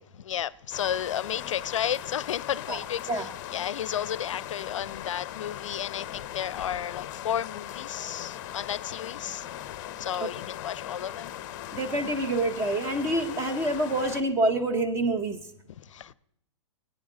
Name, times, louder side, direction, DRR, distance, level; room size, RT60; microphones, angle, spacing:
voice 1, 0.2-9.5 10.0-11.3 15.8-16.1, left 10 dB, 85° left, 0.4 m, -33 dB
sound 1, 0.7-14.2, left 12 dB, 40° left, 0.6 m, -39 dB
voice 2, 11.7-15.4, right 2 dB, 15° right, 0.8 m, -27 dB
17.0 x 9.1 x 3.8 m
hypercardioid pair, 145°, 16 cm